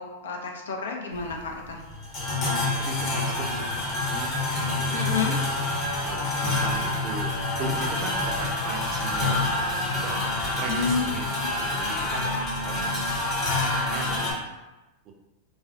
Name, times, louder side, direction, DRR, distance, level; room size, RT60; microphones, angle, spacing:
voice 1, 0.0-1.8 4.9-5.4 10.7-11.1 11.4-11.5, left 5 dB, 80° left, 2 dB, 0.4 m, -30 dB
sound 1, 1.1-14.3, left 2 dB, 40° left, 1.0 m, -27 dB
voice 2, 2.8-4.3 4.5-5.3 6.0-7.3 7.6-10.3 10.5-11.3 11.5-12.3 12.6-13.3 13.8-14.4 15.1-15.2, right 4 dB, 40° right, 2 dB, 0.4 m, -38 dB
2.3 x 2.1 x 2.5 m, 1.0 s
hypercardioid pair, 105°, 0 cm